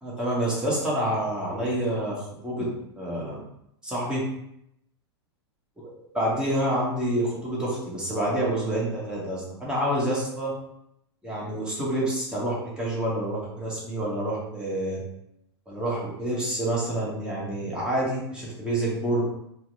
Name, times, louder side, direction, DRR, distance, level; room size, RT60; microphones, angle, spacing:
voice 1, 0.0-2.7 2.9-3.4 3.8-4.2 5.8-10.5 11.2-15.0 15.7-19.2, right 1 dB, 5° right, -6 dB, 1.3 m, -28 dB
4.4 x 2.2 x 2.7 m, 0.77 s
figure-of-eight pair, 95°, 14 cm